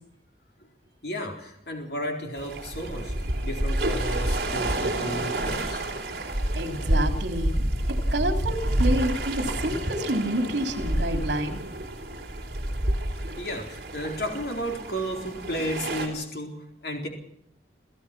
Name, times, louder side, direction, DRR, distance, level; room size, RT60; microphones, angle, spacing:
voice 1, 1.0-5.8 13.4-17.1, equal, 60° left, 2 dB, 4.1 m, -33 dB
sound 1, 2.4-16.1, right 1 dB, 55° right, 3.8 m, -29 dB
voice 2, 6.5-11.6, right 1 dB, 75° right, 5 dB, 3.3 m, -28 dB
29.0 x 15.5 x 6.1 m, 0.73 s
head